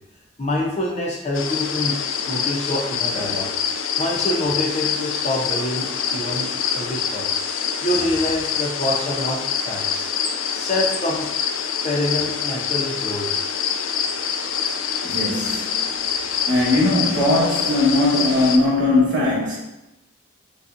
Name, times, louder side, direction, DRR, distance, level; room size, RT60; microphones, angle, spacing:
voice 1, 0.4-2.0 2.3-3.5 4.0-7.3 7.8-9.4 9.7-10.1 10.5-11.3 11.8-13.4, left 1 dB, 35° left, -2 dB, 0.6 m, -26 dB
sound 1, 1.3-18.6, left 7 dB, 75° left, 0.3 m, -25 dB
voice 2, 15.0-15.7 16.5-19.6, left 2 dB, 60° right, -6 dB, 1.2 m, -19 dB
5.1 x 2.3 x 2.6 m, 0.90 s
head